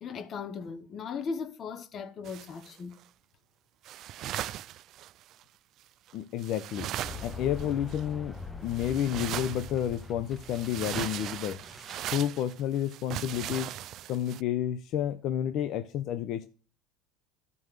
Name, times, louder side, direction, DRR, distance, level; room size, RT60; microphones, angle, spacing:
voice 1, 0.0-3.0, left 5 dB, 40° left, 1.0 m, -37 dB
sound 1, 2.2-3.0 3.8-5.4 6.1-6.2 6.4-8.0 8.7-10.1 10.3-14.4, right 13 dB, 55° right, 0.3 m, -38 dB
voice 2, 6.1-6.9 7.2-8.4 8.6-11.6 12.1-13.7 14.1-16.5, left 10 dB, 55° left, 0.7 m, -30 dB
sound 2, 7.0-11.8, left 3 dB, 10° left, 0.7 m, -42 dB
sound 3, 9.5-12.4 12.6-12.7, right 3 dB, 15° right, 1.2 m, -50 dB
15.0 x 5.3 x 3.2 m
supercardioid pair, 95°, 0 cm